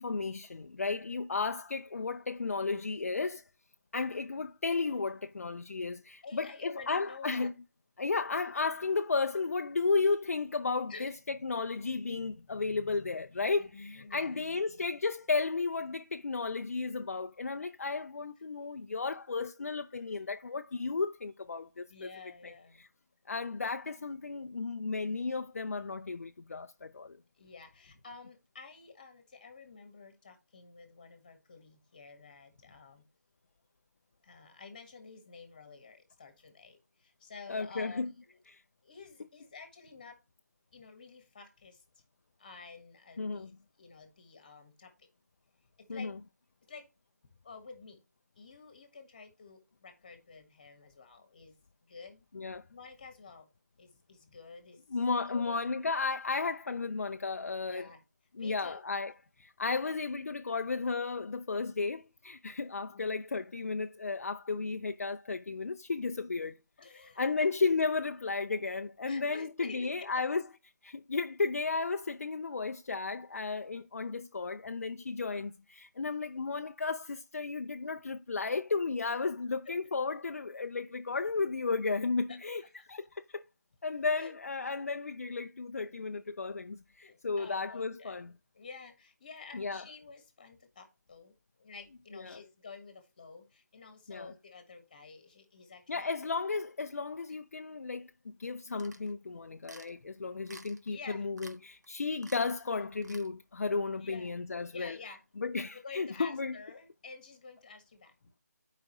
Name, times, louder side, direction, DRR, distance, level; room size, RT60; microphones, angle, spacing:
voice 1, 0.0-3.4 3.9-7.5 8.0-22.1 22.4-22.5 22.8-22.9 23.3-27.2 37.5-38.1 38.5-38.6 43.2-43.5 45.9-46.1 52.3-52.6 54.9-57.9 58.3-59.1 59.4-66.6 66.9-70.4 70.8-82.6 82.9-83.4 83.8-88.3 89.5-89.8 92.1-92.4 94.1-94.3 95.9-105.0 105.4-106.6, left 4 dB, 55° left, 0.4 m, -34 dB
voice 2, 6.2-7.5 10.9-11.1 13.6-14.4 21.9-22.8 27.4-33.0 34.2-38.4 38.8-40.2 40.7-41.8 42.4-43.5 43.8-45.1 45.8-46.1 46.7-46.9 47.4-48.0 48.3-52.2 52.7-53.5 53.8-54.8 55.3-55.6 57.7-58.0 58.4-58.8 62.9-63.0 66.8-67.5 69.0-70.2 79.6-79.7 82.3-82.9 84.2-84.3 87.0-96.1 97.3-97.4 100.0-100.1 100.9-101.3 104.0-104.3 104.7-105.2 105.7-108.3, left 4 dB, 30° left, 1.4 m, -50 dB
sound 1, 98.8-99.1 99.6-99.9 100.5-100.9 101.4-101.6 101.8-101.9 102.2-102.6 103.0-103.3, right 2 dB, 75° right, 1.3 m, -52 dB
11.5 x 5.0 x 3.0 m
figure-of-eight pair, 170°, 9 cm